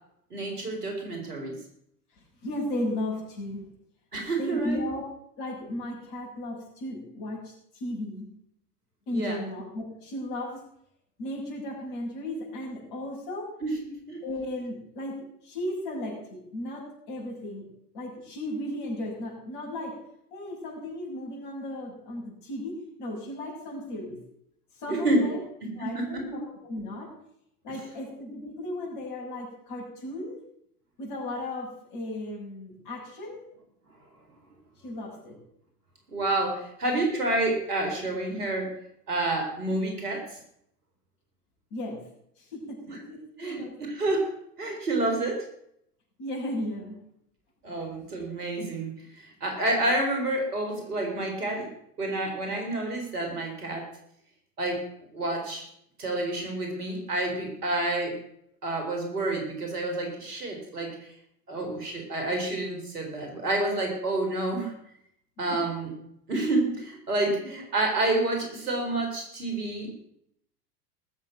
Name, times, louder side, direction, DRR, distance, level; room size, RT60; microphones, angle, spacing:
voice 1, 0.3-1.6 4.1-4.8 9.1-9.4 13.6-14.2 24.9-25.4 25.8-26.2 36.1-38.7 39.1-40.2 43.4-43.6 43.9-44.3 44.6-45.5 47.6-51.7 52.0-53.9 54.6-54.8 55.1-55.7 56.0-58.1 58.6-60.9 61.5-64.7 65.4-65.9 66.3-70.1, right 2 dB, 70° right, 2 dB, 4.6 m, -29 dB
voice 2, 2.4-3.6 4.4-5.1 5.4-8.3 9.1-10.6 11.2-13.5 14.2-17.7 17.9-20.0 20.3-24.2 24.8-25.4 25.8-27.1 27.6-30.4 31.0-33.4 34.8-35.4 41.7-42.0 42.4-43.7 46.2-47.0 67.4-67.5, left 1 dB, 40° left, -1 dB, 6.8 m, -35 dB
19.5 x 7.5 x 6.2 m, 0.72 s
figure-of-eight pair, 90°, 48 cm